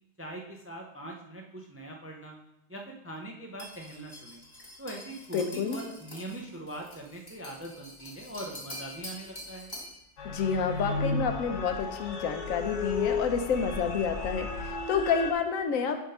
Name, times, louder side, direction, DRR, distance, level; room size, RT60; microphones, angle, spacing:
voice 1, 0.2-2.4 2.7-4.4 4.8-9.7, right 1 dB, 20° right, 1 dB, 0.3 m, -42 dB
sound 1, 3.6-10.0, left 1 dB, 20° left, 1.2 m, -45 dB
voice 2, 5.3-5.8 10.2-16.0, left 6 dB, 90° left, 6 dB, 1.2 m, -29 dB
sound 2, 10.2-15.3, left 2 dB, 65° left, 1.1 m, -33 dB
7.3 x 3.6 x 5.5 m, 0.88 s
omnidirectional pair, 1.4 m